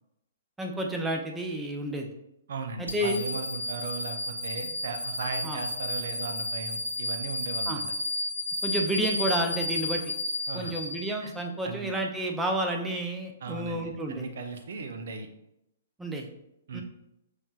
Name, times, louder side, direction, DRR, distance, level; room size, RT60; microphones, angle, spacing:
voice 1, 0.6-2.1 2.8-3.2 5.4-5.6 7.7-7.8 8.6-10.0 10.5-14.3 16.0-16.3 16.7-16.8, right 1 dB, 5° right, 1 dB, 0.5 m, -30 dB
voice 2, 2.5-7.8 10.5-10.7 11.2-11.3 11.6-11.9 13.4-15.3 16.7-16.8, right 4 dB, 55° right, 6 dB, 0.5 m, -37 dB
sound 1, 2.9-11.3, left 1 dB, 80° left, 0.6 m, -32 dB
5.1 x 3.2 x 2.3 m, 0.85 s
figure-of-eight pair, 115°, 0 cm